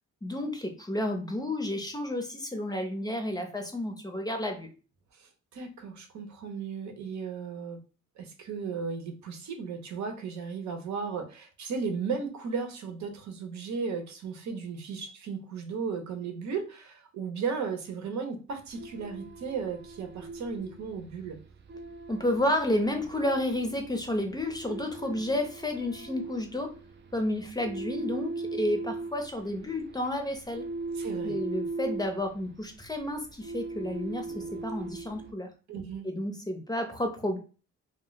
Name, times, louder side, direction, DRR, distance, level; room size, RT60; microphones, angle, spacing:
voice 1, 0.2-4.7 22.1-26.7 27.1-30.7 31.2-35.5 36.0-37.4, left 1 dB, 15° left, 4 dB, 0.6 m, -31 dB
voice 2, 5.1-7.8 8.2-21.4 30.9-31.4 35.7-36.0, right 5 dB, 70° right, 5 dB, 0.8 m, -35 dB
sound 1, 18.7-35.3, right 3 dB, 40° right, 0.5 m, -40 dB
2.3 x 2.1 x 3.8 m, 0.35 s
cardioid pair, 90°, 30 cm